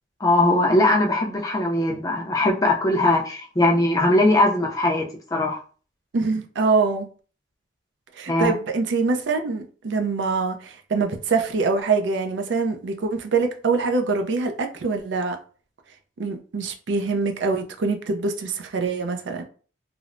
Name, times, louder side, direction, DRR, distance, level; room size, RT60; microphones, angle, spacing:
voice 1, 0.2-5.6 8.3-8.5, left 1 dB, 20° left, 0.4 m, -20 dB
voice 2, 6.1-7.1 8.2-15.4 16.2-19.4, right 4 dB, 75° right, 0.4 m, -24 dB
3.0 x 2.0 x 2.4 m
head